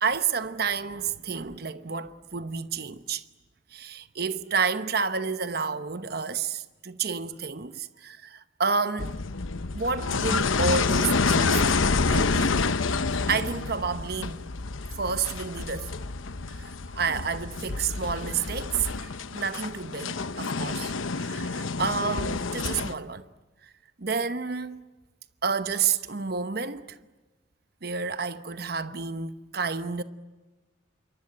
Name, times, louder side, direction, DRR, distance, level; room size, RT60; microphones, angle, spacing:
voice 1, 0.0-3.2 3.7-9.1 9.7-11.8 12.1-12.6 13.3-14.4 15.0-15.9 16.5-23.3 23.6-23.7 24.0-24.8 25.4-27.0 27.8-30.0, right 5 dB, 50° right, 1.0 m, -30 dB
sound 1, 9.0-22.9, left 4 dB, 85° left, 0.9 m, -28 dB
27.5 x 24.0 x 8.9 m
head